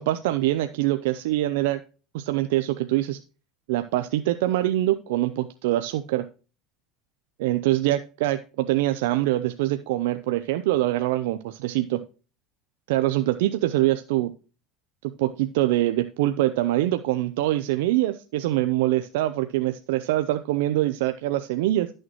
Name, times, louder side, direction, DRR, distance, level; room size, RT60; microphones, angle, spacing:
voice 1, 0.0-1.8 2.1-3.2 3.7-6.3 7.4-12.0 12.9-14.3 15.2-21.9, right 15 dB, 85° right, 9 dB, 0.5 m, -24 dB
12.0 x 6.4 x 3.0 m, 0.35 s
supercardioid pair, 115°, 0 cm